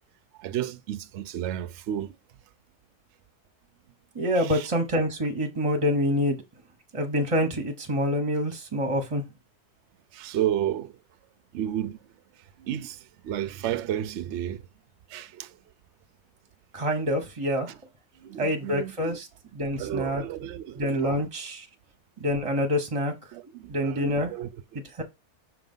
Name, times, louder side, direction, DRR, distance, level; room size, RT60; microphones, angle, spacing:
voice 1, 0.4-2.1 4.4-4.7 10.1-10.9 11.5-12.0 12.6-13.0 13.2-14.6 15.1-15.5 17.7-17.8 18.3-19.2 19.8-21.2 23.3-24.5, right 11 dB, 60° right, 0.8 m, -32 dB
voice 2, 4.1-6.4 6.9-9.2 16.7-17.7 18.4-19.3 19.5-20.2 20.8-21.7 22.2-23.1 23.7-24.3 25.0-25.1, equal, 25° right, 0.9 m, -26 dB
6.3 x 3.9 x 5.4 m
omnidirectional pair, 1.7 m